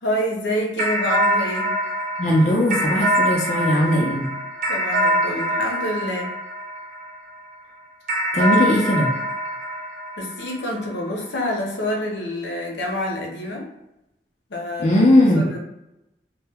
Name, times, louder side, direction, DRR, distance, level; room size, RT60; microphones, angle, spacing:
voice 1, 0.0-1.7 4.7-6.3 10.2-13.7 14.5-15.6, left 1 dB, 85° left, -1 dB, 0.7 m, -27 dB
sound 1, 0.8-7.4 8.1-10.8, right 1 dB, 50° right, 0.4 m, -24 dB
voice 2, 2.2-4.3 8.3-9.1 14.8-15.4, left 1 dB, 40° left, -2 dB, 0.5 m, -18 dB
2.2 x 2.1 x 3.4 m, 0.90 s
head